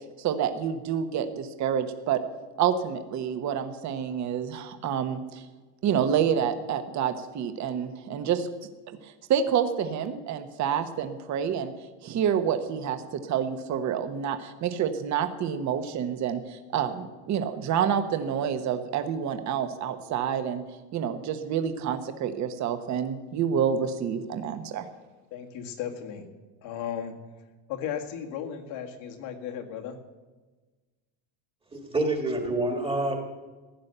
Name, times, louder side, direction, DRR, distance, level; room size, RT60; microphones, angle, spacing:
voice 1, 0.2-2.2 2.6-5.4 5.8-8.5 9.0-11.7 12.0-20.6 20.9-24.8, right 8 dB, 35° right, 9 dB, 1.1 m, -28 dB
voice 2, 25.3-26.2 26.6-27.2 27.7-30.0, left 8 dB, 65° left, 4 dB, 2.1 m, -35 dB
voice 3, 31.7-33.2, right 2 dB, 10° right, 3 dB, 1.6 m, -27 dB
15.5 x 10.5 x 6.7 m, 1.3 s
cardioid pair, 160°, 49 cm